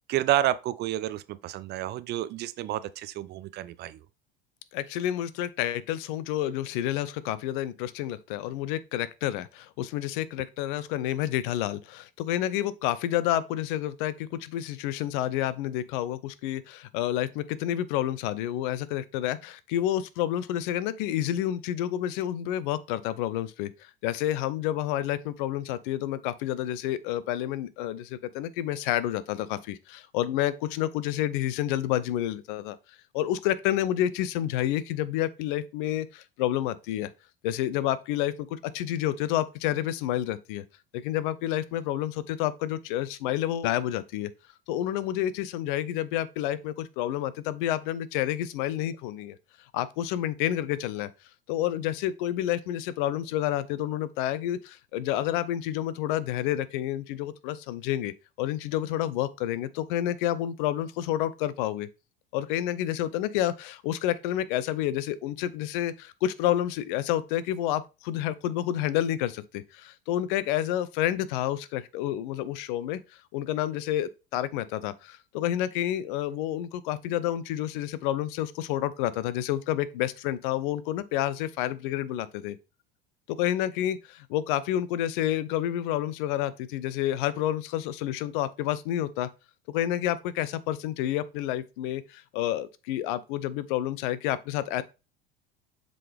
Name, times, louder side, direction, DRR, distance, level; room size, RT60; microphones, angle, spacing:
voice 1, 0.1-4.0, right 13 dB, 35° right, 0.4 m, -29 dB
voice 2, 4.7-32.8 33.1-37.1 37.4-40.6 40.9-44.3 44.7-49.4 49.7-51.1 51.5-61.9 62.3-73.0 73.3-82.6 83.3-89.3 89.7-94.8, left 12 dB, 60° left, 0.7 m, -29 dB
7.5 x 3.9 x 3.4 m
hypercardioid pair, 75°, 29 cm